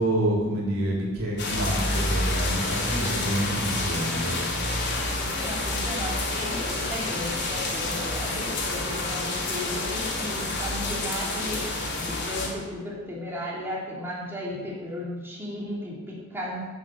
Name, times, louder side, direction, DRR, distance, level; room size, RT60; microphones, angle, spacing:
voice 1, 0.0-4.5, right 1 dB, 80° right, -3 dB, 3.6 m, -27 dB
sound 1, 1.4-12.5, left 2 dB, 50° left, 3.1 m, -28 dB
voice 2, 5.2-11.6 12.0-16.7, left 1 dB, 10° right, -6 dB, 3.0 m, -35 dB
10.5 x 7.4 x 7.9 m, 1.3 s
head